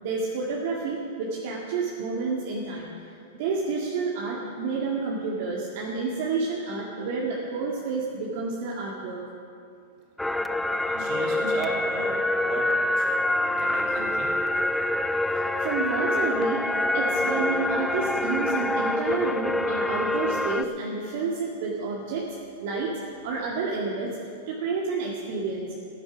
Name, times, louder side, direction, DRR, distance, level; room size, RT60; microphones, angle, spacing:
voice 1, 0.0-2.9 3.4-9.2 15.6-16.6 16.9-22.2 22.6-22.9 23.2-24.2 24.5-25.7, right 4 dB, 55° right, -4 dB, 2.0 m, -29 dB
sound 1, 10.2-20.6, left 1 dB, 5° left, 0.4 m, -26 dB
voice 2, 10.9-13.1 13.5-14.3, right 3 dB, 40° right, -3 dB, 3.5 m, -36 dB
15.0 x 10.5 x 6.0 m, 2.4 s
supercardioid pair, 150°, 0 cm